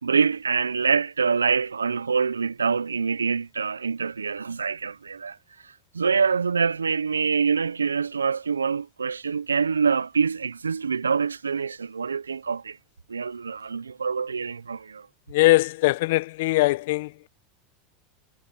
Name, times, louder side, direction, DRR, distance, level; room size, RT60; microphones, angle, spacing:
voice 1, 0.0-5.4 5.6-12.8 13.1-15.1, right 5 dB, 90° right, 0.8 m, -25 dB
voice 2, 15.3-17.3, left 20 dB, 65° left, 1.1 m, -21 dB
hypercardioid pair, 85°, 0 cm